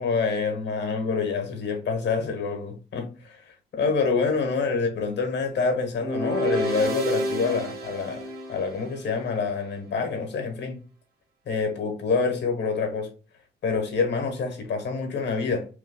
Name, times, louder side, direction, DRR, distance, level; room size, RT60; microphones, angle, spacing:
voice 1, 0.0-8.2 8.5-10.8 11.5-13.1 13.6-15.7, left 4 dB, 60° left, 1.3 m, -27 dB
sound 1, 6.0-9.2, right 1 dB, 55° right, 1.3 m, -30 dB
3.4 x 2.3 x 3.8 m
cardioid pair, 90°, 20 cm